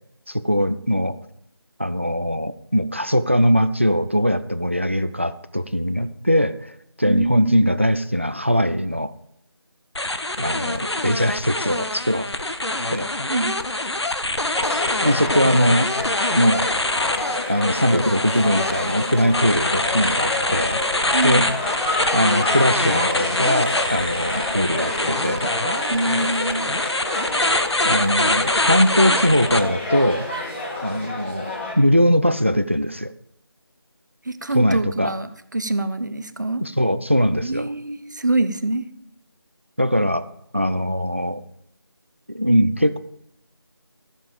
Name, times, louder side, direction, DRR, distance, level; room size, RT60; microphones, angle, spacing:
voice 1, 0.3-1.2 1.8-6.7 7.0-9.1 10.4-12.3 12.9-13.2 15.0-15.9 16.4-16.7 17.5-20.8 21.2-21.5 22.1-25.5 27.8-30.3 30.8-33.1 34.5-35.1 36.6-37.7 39.8-40.3 40.5-41.4 42.3-43.0, equal, 30° right, 13 dB, 0.3 m, -21 dB
voice 2, 7.0-7.8 13.3-13.6 21.1-21.5 25.9-26.7 34.3-36.6 37.4-38.8, right 2 dB, 45° right, 12 dB, 0.7 m, -25 dB
sound 1, 10.0-29.6, left 2 dB, 85° left, 1.0 m, -24 dB
sound 2, 14.5-31.7, left 2 dB, 25° left, 2.5 m, -29 dB
14.0 x 7.1 x 5.0 m, 0.74 s
figure-of-eight pair, 170°, 14 cm